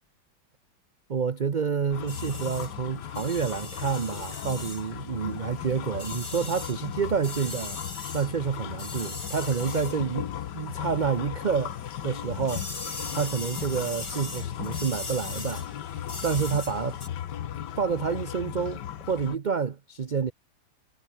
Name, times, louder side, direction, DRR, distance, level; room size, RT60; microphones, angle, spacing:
voice 1, 1.1-7.8 8.1-11.8 12.0-12.7 13.1-15.6 16.2-17.0 17.8-20.3, right 6 dB, 40° right, 0.7 m, -28 dB
sound 1, 1.9-19.4, left 10 dB, 80° left, 1.7 m, -37 dB
sound 2, 2.1-11.1 11.4-17.1, left 3 dB, 55° left, 5.1 m, -41 dB
omnidirectional pair, 1.8 m